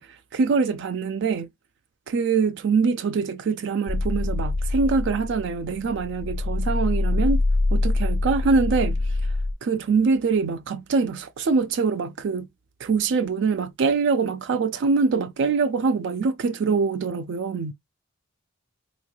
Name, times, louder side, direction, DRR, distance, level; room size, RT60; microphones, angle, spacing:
voice 1, 0.0-1.5 2.1-7.4 7.7-9.3 9.6-12.5 12.8-17.7, right 4 dB, 60° right, 0.4 m, -24 dB
sound 1, 3.9-9.5, left 2 dB, 40° left, 0.4 m, -25 dB
3.5 x 3.1 x 2.2 m
head